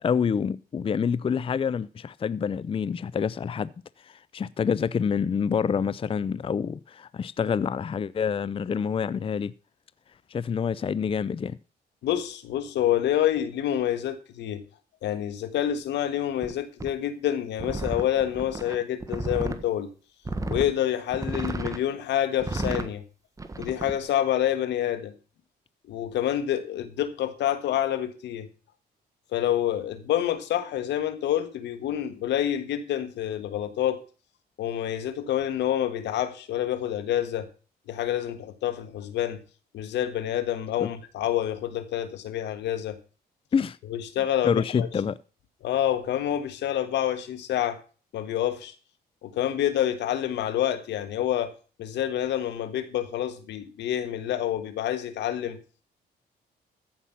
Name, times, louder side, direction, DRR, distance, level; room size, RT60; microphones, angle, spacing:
voice 1, 0.0-3.7 4.0-9.5 10.3-11.6 40.8-40.9 43.5-43.8 44.4-45.1, left 6 dB, 30° left, 0.5 m, -27 dB
voice 2, 12.0-14.6 15.0-19.9 20.5-23.0 23.6-25.1 25.9-28.5 29.3-34.0 34.6-37.5 37.9-39.4 39.7-43.0 43.9-44.9 45.6-47.8 48.1-48.7 49.2-51.5 51.8-55.6, left 11 dB, 85° left, 1.6 m, -27 dB
pc keyboard, 16.4-16.5 16.8-16.9 17.6-19.6 20.3-20.7 21.1-21.8 22.4-22.9 23.4-24.0, right 2 dB, 20° right, 1.4 m, -32 dB
14.5 x 5.6 x 5.8 m
cardioid pair, 85°, 18 cm